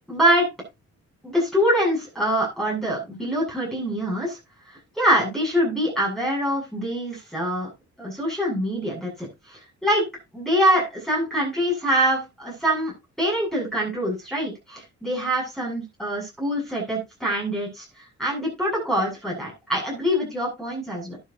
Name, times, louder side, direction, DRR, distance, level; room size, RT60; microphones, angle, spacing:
voice 1, 0.1-0.5 1.2-4.4 4.9-7.7 8.0-10.0 10.3-12.9 13.2-17.9 18.2-21.2, equal, ahead, -4 dB, 7.7 m, -24 dB
13.0 x 10.5 x 2.8 m, 0.24 s
cardioid pair, 100°, 30 cm